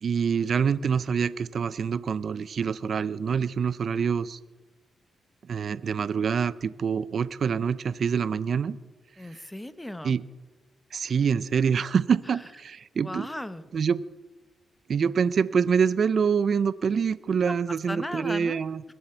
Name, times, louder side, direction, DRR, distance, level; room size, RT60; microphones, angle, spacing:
voice 1, 0.0-4.4 5.5-8.8 10.0-10.2 10.9-13.3 13.7-14.0 14.9-18.8, right 6 dB, 60° right, 16 dB, 0.4 m, -26 dB
voice 2, 9.2-10.2 13.0-13.6 17.4-18.6, left 1 dB, 10° left, 13 dB, 0.9 m, -36 dB
21.5 x 7.8 x 4.5 m, 1.2 s
cardioid pair, 65°, 0 cm